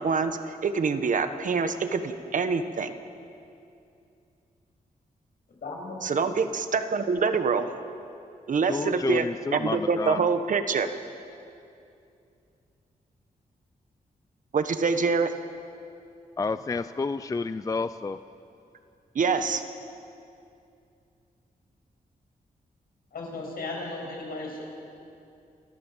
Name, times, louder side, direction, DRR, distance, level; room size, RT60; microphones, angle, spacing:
voice 1, 0.0-2.9 6.0-7.7 8.5-9.3 9.5-10.9 14.5-15.3 19.1-19.6, right 5 dB, 55° right, 9 dB, 1.2 m, -25 dB
voice 2, 5.5-6.0 23.1-24.6, left 2 dB, 75° left, -1 dB, 6.4 m, -36 dB
voice 3, 8.7-10.2 16.4-18.2, left 4 dB, 20° left, 12 dB, 0.4 m, -30 dB
28.5 x 14.5 x 7.4 m, 2.6 s
wide cardioid pair, 135°, 15 cm